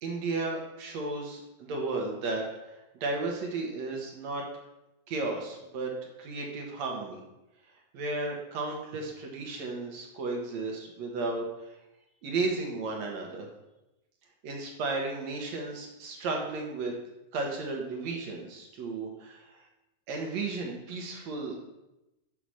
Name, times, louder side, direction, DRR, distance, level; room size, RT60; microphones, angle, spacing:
voice 1, 0.0-4.4 5.1-5.9 6.2-7.2 7.9-11.7 12.2-13.5 14.4-16.9 17.3-19.6 20.1-21.7, right 3 dB, 65° right, 1 dB, 2.3 m, -34 dB
7.3 x 4.9 x 6.3 m, 0.95 s
omnidirectional pair, 3.5 m